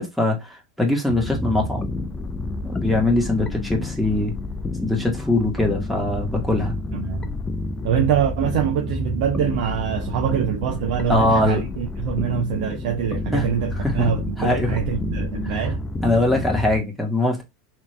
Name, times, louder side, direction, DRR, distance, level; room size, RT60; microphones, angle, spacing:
voice 1, 0.0-1.9 2.6-4.3 4.8-6.7 11.1-11.7 13.3-13.5 13.8-14.1 14.4-14.8 15.4-15.5 16.0-17.4, left 2 dB, ahead, 1.8 m, -22 dB
sound 1, 1.1-16.8, left 2 dB, 15° left, 0.6 m, -29 dB
voice 2, 6.9-7.3 7.8-15.8, right 9 dB, 65° right, 0.8 m, -24 dB
3.5 x 3.2 x 3.2 m
hypercardioid pair, 105°, 4 cm